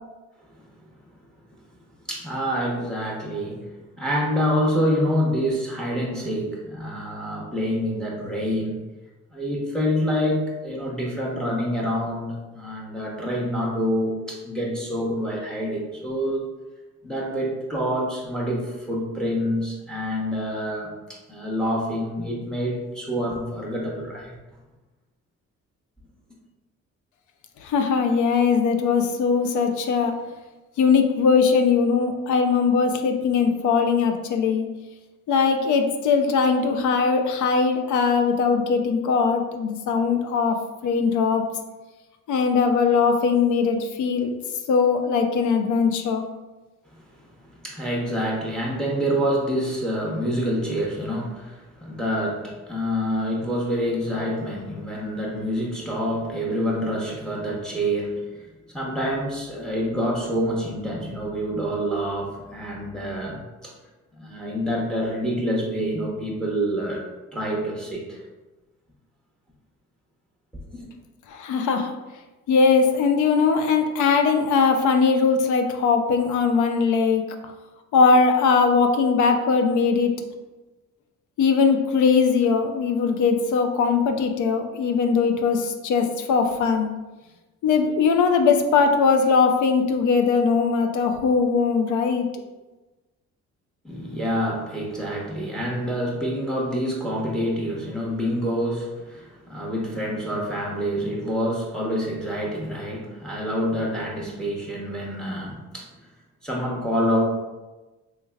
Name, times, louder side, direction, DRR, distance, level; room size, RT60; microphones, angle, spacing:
voice 1, 2.1-8.8 9.3-16.5 17.0-24.3 47.2-47.3 47.6-63.7 64.2-67.0 67.3-68.2 70.7-70.9 93.8-105.9 106.4-107.2, equal, ahead, -3 dB, 0.8 m, -27 dB
voice 2, 27.6-30.2 30.8-34.7 35.3-40.6 40.8-41.5 42.3-44.4 44.7-46.2 71.3-71.9 72.5-77.2 77.9-80.1 81.4-86.9 87.6-92.3, left 5 dB, 75° left, 5 dB, 0.5 m, -20 dB
3.2 x 3.2 x 2.3 m, 1.1 s
cardioid pair, 90°, 30 cm